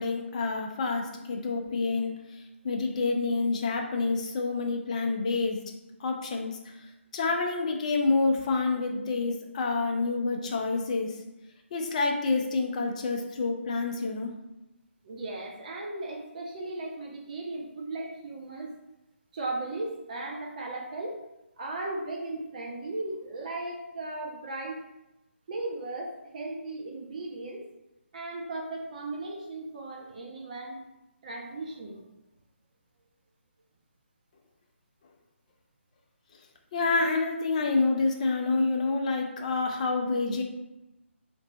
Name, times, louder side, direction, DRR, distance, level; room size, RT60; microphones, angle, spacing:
voice 1, 0.0-5.6 6.0-6.9 7.1-11.2 11.7-14.4 36.7-40.4, left 3 dB, 35° left, 3 dB, 0.5 m, -28 dB
voice 2, 15.0-18.7 19.3-21.3 21.6-24.8 25.5-27.7 28.1-30.8 31.2-32.0, right 2 dB, 40° right, -1 dB, 0.5 m, -36 dB
2.9 x 2.6 x 4.0 m, 0.94 s
figure-of-eight pair, 145°, 7 cm